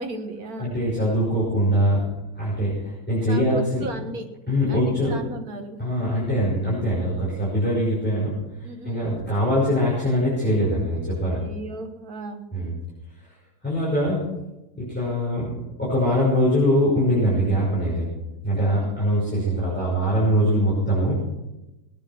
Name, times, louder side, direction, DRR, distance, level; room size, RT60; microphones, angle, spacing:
voice 1, 0.0-0.7 3.3-4.3 4.7-5.8 8.6-9.2 11.3-12.4 18.8-19.0, right 2 dB, 65° right, 6 dB, 1.9 m, -35 dB
voice 2, 0.6-2.0 2.4-2.7 3.1-3.9 4.5-5.2 5.8-8.3 8.8-11.4 12.5-12.7 13.6-14.3 14.8-15.5 15.8-18.1 18.4-21.1, equal, 5° left, -9 dB, 5.7 m, -22 dB
19.0 x 9.9 x 5.9 m, 1.0 s
omnidirectional pair, 1.7 m